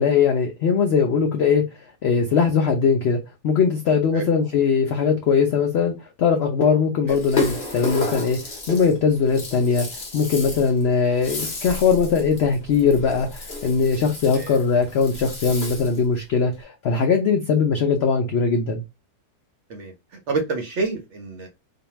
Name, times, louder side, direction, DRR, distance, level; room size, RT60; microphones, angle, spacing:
voice 1, 0.0-1.6 2.0-3.2 3.4-5.9 6.2-8.4 8.7-9.9 10.1-18.8, left 5 dB, 80° left, 0.5 m, -20 dB
Rattle (instrument), 7.1-16.1, left 2 dB, 40° left, 0.8 m, -32 dB
voice 2, 19.7-21.5, right 3 dB, 60° right, 0.7 m, -28 dB
2.5 x 2.2 x 3.0 m
omnidirectional pair, 1.7 m